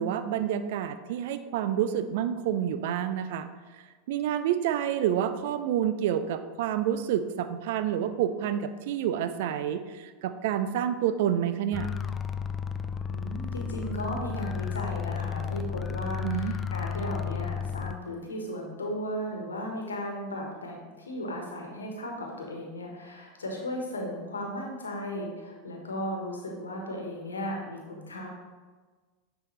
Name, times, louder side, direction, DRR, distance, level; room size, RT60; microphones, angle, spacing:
voice 1, 0.0-3.5 4.1-11.9 16.2-16.5, right 10 dB, 65° right, 11 dB, 0.4 m, -28 dB
sound 1, 11.7-18.0, left 7 dB, 25° left, 0.3 m, -33 dB
voice 2, 13.1-28.3, equal, 90° left, 0 dB, 1.2 m, -36 dB
9.5 x 3.5 x 3.2 m, 1.4 s
hypercardioid pair, 90°, 0 cm